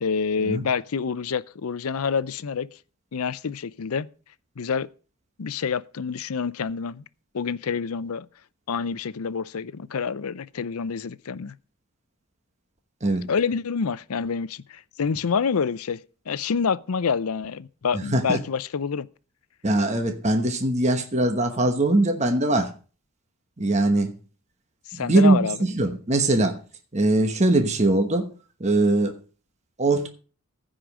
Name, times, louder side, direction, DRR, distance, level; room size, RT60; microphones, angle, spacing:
voice 1, 0.0-2.7 3.1-4.1 4.6-4.9 5.4-7.0 7.3-8.3 8.7-11.5 13.3-16.0 16.3-19.1 24.9-25.6, left 6 dB, 80° left, 0.5 m, -27 dB
voice 2, 17.9-18.4 19.6-22.7 23.6-24.2 24.9-26.6 26.9-28.3 28.6-29.2 29.8-30.1, right 2 dB, 30° right, 1.1 m, -21 dB
15.0 x 5.1 x 6.2 m
head